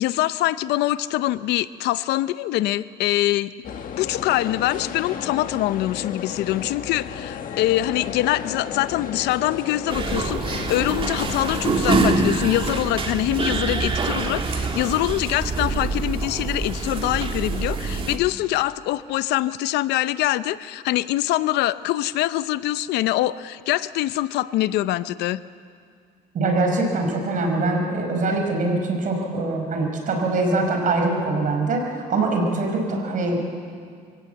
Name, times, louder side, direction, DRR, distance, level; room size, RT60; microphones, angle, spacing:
voice 1, 0.0-3.5 4.0-25.4, left 15 dB, 85° left, 15 dB, 0.6 m, -24 dB
sound 1, 3.6-12.3, left 7 dB, 55° left, 1.3 m, -33 dB
sound 2, 9.9-18.2, right 3 dB, 30° right, 1.8 m, -25 dB
voice 2, 26.3-31.8 32.1-33.4, right 2 dB, 50° right, 2 dB, 5.1 m, -23 dB
24.0 x 16.5 x 8.0 m, 2.2 s
cardioid pair, 110°, 17 cm